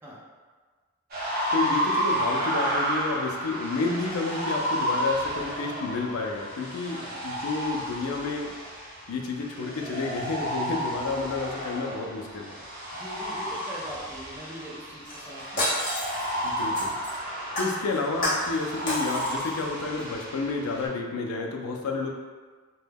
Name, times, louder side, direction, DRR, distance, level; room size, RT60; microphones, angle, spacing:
sound 1, 1.1-20.9, equal, 45° right, 0.7 m, -32 dB
voice 1, 1.5-8.5 9.1-12.5 16.4-16.9 17.5-22.1, left 3 dB, 85° left, 1 dB, 0.4 m, -30 dB
voice 2, 6.9-7.3 12.9-15.8, equal, 10° right, -6 dB, 0.4 m, -42 dB
Shatter, 15.0-17.2 17.6-18.6 18.9-19.6 20.0-20.1, left 1 dB, 40° left, 0.9 m, -30 dB
2.2 x 2.1 x 3.3 m, 1.5 s
head